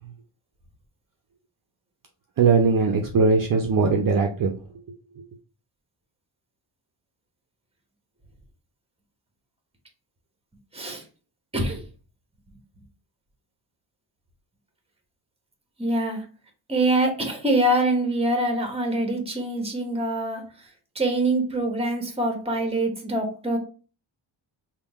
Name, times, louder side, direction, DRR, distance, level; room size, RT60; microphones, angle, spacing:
voice 1, 2.4-4.5, right 4 dB, 45° right, 2 dB, 0.6 m, -20 dB
voice 2, 10.7-11.0 11.5-11.8 15.8-16.2 16.7-20.4 20.9-23.6, right 1 dB, 10° right, 4 dB, 0.9 m, -24 dB
3.7 x 2.3 x 3.4 m, 0.36 s
cardioid pair, 115°, 47 cm